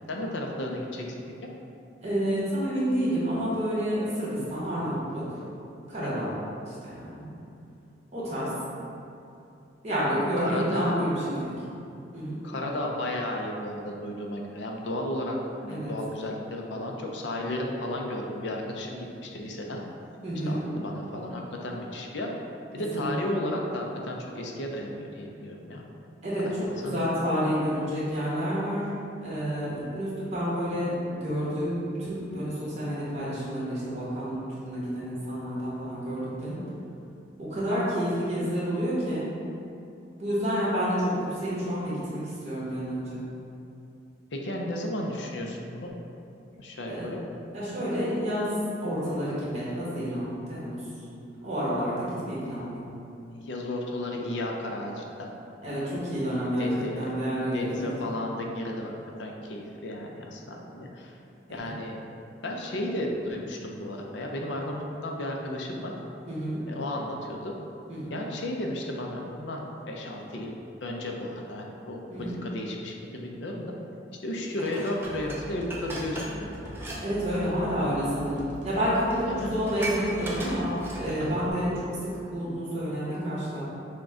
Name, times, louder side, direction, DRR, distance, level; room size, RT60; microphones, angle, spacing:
voice 1, 0.1-1.2 6.0-6.3 10.4-10.9 12.4-15.4 15.6-19.8 20.5-22.3 22.7-25.8 26.5-26.6 26.8-27.1 44.3-45.9 46.6-47.2 53.4-55.3 56.6-57.2 57.5-58.9 59.2-61.2 61.5-62.0 62.4-65.9 66.7-67.5 68.1-73.7 74.2-76.5 77.6-77.9 79.3-79.5 81.2-81.5, left 1 dB, 75° left, 0 dB, 0.5 m, -33 dB
voice 2, 2.0-5.4 5.9-6.3 6.7-7.3 8.1-8.5 9.8-11.5 12.1-12.4 15.7-15.9 20.2-20.7 22.9-23.1 26.2-28.9 29.2-30.9 31.2-36.6 37.5-39.3 40.2-43.2 46.9-47.1 47.5-50.9 51.4-52.9 55.6-57.9 61.5-61.6 66.3-66.6 67.9-68.1 72.1-72.3 77.0-83.6, equal, 35° right, -9 dB, 1.4 m, -29 dB
Dishes pots and pans, 74.6-77.0 77.3-77.5 78.4-78.5 78.8-78.9 79.1-81.3 81.8-81.9, right 1 dB, 10° right, 0.5 m, -38 dB
sound 1, 75.0-81.5, equal, 70° right, 0.9 m, -43 dB
6.1 x 2.3 x 3.6 m, 2.7 s
head